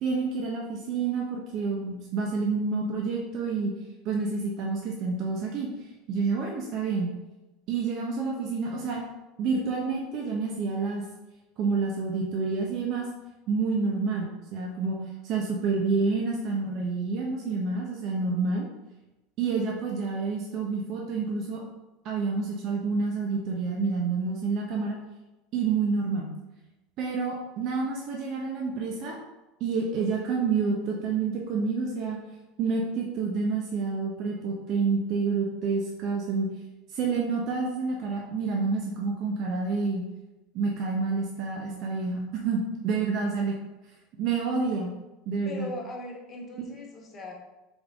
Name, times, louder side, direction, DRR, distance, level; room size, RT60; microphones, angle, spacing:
voice 1, 0.0-3.7 4.0-5.7 6.1-7.1 7.7-9.0 9.4-11.0 11.6-13.1 13.5-15.0 15.2-18.7 19.4-21.6 22.0-25.0 25.5-26.3 27.0-29.2 29.6-32.2 32.6-36.5 36.9-40.0 40.5-43.5 44.2-44.9 45.3-45.7, right 4 dB, 50° right, -1 dB, 0.7 m, -28 dB
voice 2, 45.4-47.3, left 2 dB, 30° left, 0 dB, 1.1 m, -39 dB
3.6 x 3.5 x 3.5 m, 1.0 s
hypercardioid pair, 100°, 0 cm